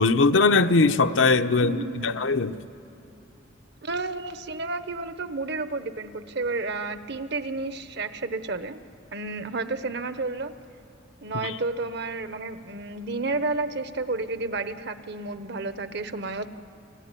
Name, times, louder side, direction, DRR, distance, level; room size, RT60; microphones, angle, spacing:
voice 1, 0.0-1.8 2.0-2.5 11.4-11.5, left 3 dB, 80° left, 9 dB, 0.8 m, -20 dB
voice 2, 1.6-2.2 3.8-8.8 9.1-10.5 11.2-16.5, right 3 dB, 60° right, 11 dB, 1.1 m, -31 dB
30.0 x 18.0 x 9.9 m, 2.8 s
head